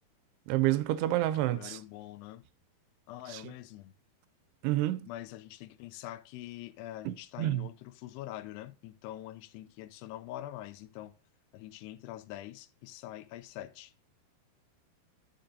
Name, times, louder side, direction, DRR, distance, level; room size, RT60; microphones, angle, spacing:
voice 1, 0.5-1.8 3.3-3.4 4.6-5.1 7.1-7.7, right 15 dB, 85° right, 2.6 m, -29 dB
voice 2, 1.4-2.4 3.1-3.9 5.1-11.2 11.5-13.9, left 14 dB, 85° left, 2.6 m, -44 dB
13.5 x 6.5 x 2.7 m
omnidirectional pair, 4.6 m